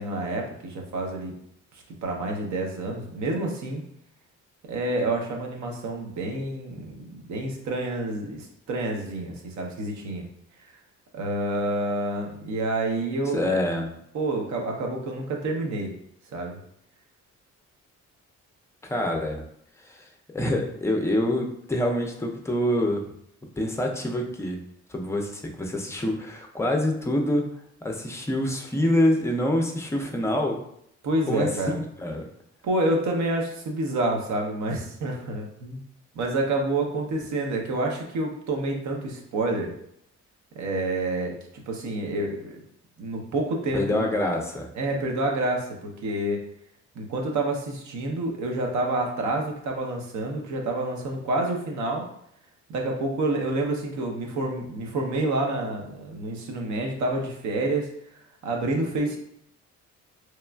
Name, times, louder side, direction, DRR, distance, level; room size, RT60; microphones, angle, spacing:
voice 1, 0.0-1.3 2.0-3.9 4.6-10.2 11.1-13.4 14.1-15.9 16.3-16.6 31.0-31.8 32.6-35.8 36.1-39.7 40.6-42.5 43.0-44.1 44.7-46.4 47.0-52.1 52.7-57.9 58.4-59.2, right 2 dB, 70° right, 1 dB, 0.7 m, -28 dB
voice 2, 13.3-13.9 18.8-19.4 19.9-20.0 20.3-23.0 23.6-24.6 24.9-25.3 25.6-27.5 27.8-30.6 31.3-31.5 31.7-32.3 43.7-44.7, left 1 dB, 10° left, 2 dB, 0.4 m, -26 dB
3.0 x 2.3 x 2.2 m, 0.72 s
cardioid pair, 90°, 30 cm